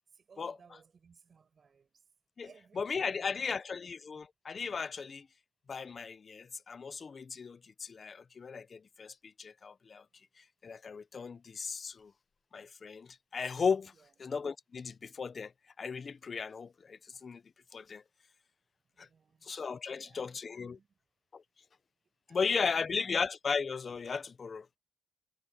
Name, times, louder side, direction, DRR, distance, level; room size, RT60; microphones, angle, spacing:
voice 1, 0.1-2.1 2.4-3.8 5.2-5.3 13.9-14.2 18.8-19.5 19.9-21.0 22.3-23.1, right 6 dB, 55° right, 8.0 m, -62 dB
voice 2, 2.8-5.3 5.7-10.0 10.6-12.1 12.5-13.9 14.2-15.5 15.8-17.4 17.7-18.0 19.0-19.1 19.4-20.8 21.3-21.4 22.3-24.7, left 5 dB, 50° left, 0.7 m, -36 dB
wide cardioid pair, 125°, 0 cm